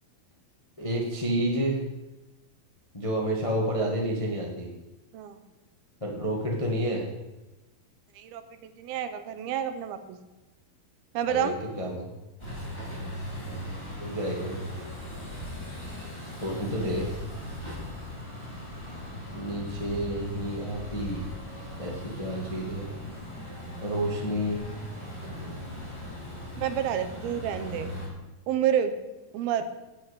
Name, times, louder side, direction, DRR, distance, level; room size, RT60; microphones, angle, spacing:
voice 1, 0.8-1.8 2.9-4.7 6.0-7.1 11.3-11.5 11.8-12.0 13.3-13.7 14.0-14.6 16.4-17.1 19.3-21.3 21.8-22.9 23.8-24.6, right 1 dB, 30° left, -2 dB, 0.6 m, -30 dB
voice 2, 8.2-10.2 11.1-11.6 26.6-27.9 28.5-28.9 29.3-29.7, right 9 dB, 85° right, 10 dB, 2.8 m, -29 dB
sound 1, 12.4-28.1, left 1 dB, 5° left, 3.8 m, -39 dB
8.7 x 8.3 x 8.2 m, 1.1 s
omnidirectional pair, 4.3 m